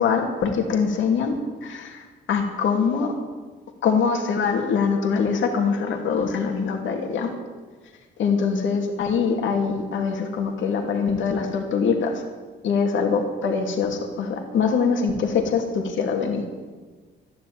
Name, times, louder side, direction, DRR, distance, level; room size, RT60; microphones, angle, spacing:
voice 1, 0.0-3.1 3.8-7.3 8.2-12.2 12.6-16.4, left 5 dB, 75° left, 2 dB, 2.5 m, -23 dB
13.0 x 10.5 x 8.7 m, 1.4 s
cardioid pair, 90°, 20 cm